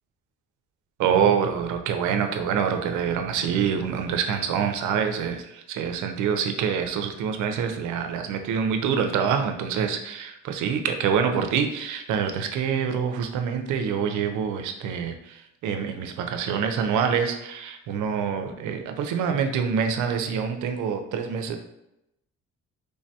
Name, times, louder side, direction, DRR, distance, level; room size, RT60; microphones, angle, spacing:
voice 1, 1.0-21.6, right 7 dB, 80° right, 6 dB, 0.5 m, -26 dB
3.3 x 2.1 x 2.7 m, 0.85 s
cardioid pair, 90°, 30 cm